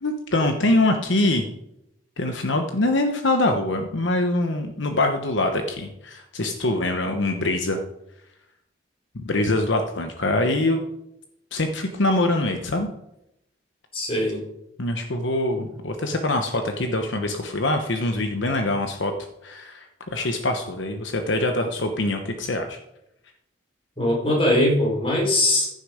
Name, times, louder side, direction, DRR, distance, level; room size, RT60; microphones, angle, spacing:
voice 1, 0.0-1.5 2.2-7.8 9.1-10.8 11.5-12.9 14.8-19.1 19.4-22.8, left 2 dB, 70° left, 5 dB, 1.0 m, -24 dB
voice 2, 13.9-14.4 24.0-25.7, left 1 dB, 30° left, -2 dB, 4.4 m, -21 dB
15.5 x 6.5 x 5.0 m, 0.82 s
head